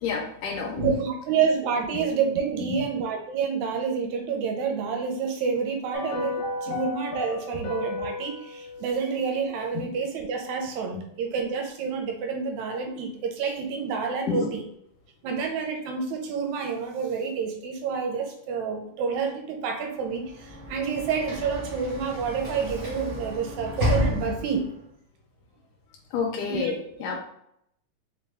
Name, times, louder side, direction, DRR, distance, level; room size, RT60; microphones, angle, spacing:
voice 1, 0.0-0.9 2.7-2.8 6.7-6.8 9.7-9.8 10.9-11.0 14.3-14.5 26.1-27.2, left 5 dB, 80° left, 0 dB, 2.1 m, -29 dB
voice 2, 0.8-14.6 15.2-24.7 26.5-26.7, right 6 dB, 80° right, 3 dB, 1.8 m, -28 dB
sound 1, 5.9-10.2 10.5-10.6, left 2 dB, 65° left, 1.4 m, -35 dB
Sliding door / Slam, 20.1-24.8, left 1 dB, 60° right, 0.7 m, -31 dB
5.3 x 2.2 x 3.3 m, 0.74 s
omnidirectional pair, 3.6 m